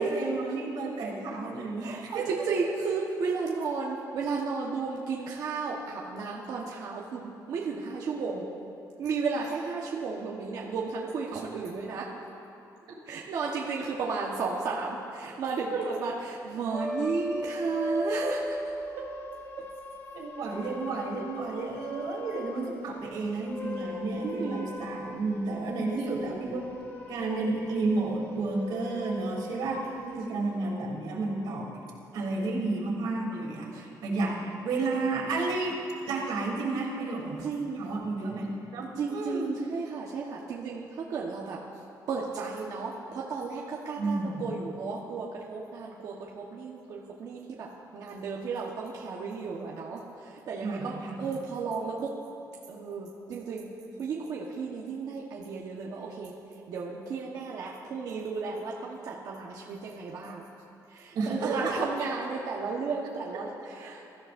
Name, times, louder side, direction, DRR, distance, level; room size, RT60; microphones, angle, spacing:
voice 1, 0.0-2.3 15.7-15.9 20.1-26.6 27.1-31.8 32.1-34.3 34.6-35.8 36.0-37.4 37.8-38.9 39.1-39.6 44.0-44.4 50.6-51.3 61.1-61.8, right 3 dB, 90° right, -3 dB, 3.1 m, -31 dB
voice 2, 1.8-8.5 9.0-12.1 13.1-18.6 19.0-19.1 19.6-19.7 24.2-24.7 26.0-26.2 30.0-30.5 33.7-33.8 37.4-37.8 39.0-41.6 42.1-52.2 52.7-56.4 56.7-60.4 60.9-64.0, right 4 dB, 55° right, -3 dB, 1.2 m, -34 dB
sound 1, 16.7-22.8 23.3-30.2, left 1 dB, 30° left, 1.8 m, -39 dB
23.0 x 14.0 x 2.6 m, 2.7 s
cardioid pair, 175°, 7 cm